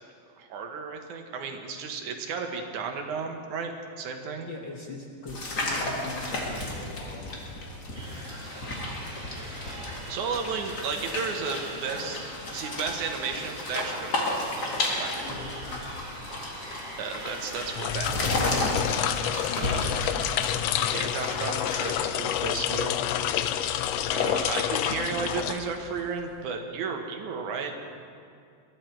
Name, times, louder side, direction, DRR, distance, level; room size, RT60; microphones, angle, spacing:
voice 1, 0.4-3.7 4.0-4.5 9.8-15.4 17.0-18.9 19.6-19.8 20.9-23.0 24.1-27.8, right 5 dB, 85° right, 4 dB, 2.7 m, -34 dB
voice 2, 4.4-7.7 15.2-15.5 16.2-16.3 19.5-19.8, left 3 dB, 50° left, 0 dB, 1.5 m, -41 dB
sound 1, 5.3-22.0, left 1 dB, 35° left, 2.4 m, -33 dB
sound 2, 7.9-17.9, right 1 dB, 50° right, 3.8 m, -43 dB
sound 3, 17.7-26.1, left 11 dB, 80° left, 1.5 m, -28 dB
21.0 x 13.0 x 4.6 m, 2.3 s
omnidirectional pair, 3.4 m